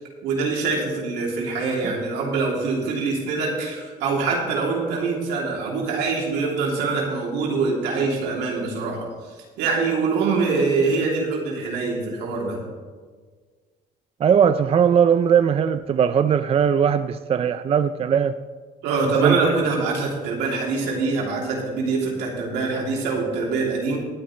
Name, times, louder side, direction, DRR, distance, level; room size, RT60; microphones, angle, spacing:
voice 1, 0.2-9.1 9.6-12.7 18.8-24.0, right 4 dB, 90° right, -1 dB, 3.1 m, -24 dB
voice 2, 14.2-18.3 19.2-19.6, right 8 dB, 35° right, 11 dB, 0.4 m, -19 dB
19.0 x 9.3 x 3.3 m, 1.5 s
cardioid pair, 110°, 17 cm